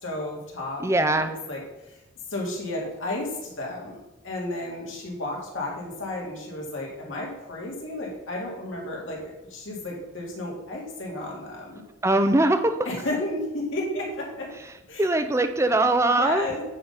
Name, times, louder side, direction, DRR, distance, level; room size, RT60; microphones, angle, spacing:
voice 1, 0.0-2.0 2.3-11.8 12.8-14.5 14.9-15.1 16.1-16.6, left 1 dB, 70° left, -3 dB, 2.2 m, -33 dB
voice 2, 0.8-1.3 12.0-12.9 15.0-16.5, right 2 dB, 15° right, 9 dB, 0.4 m, -21 dB
8.7 x 4.0 x 5.4 m, 1.0 s
head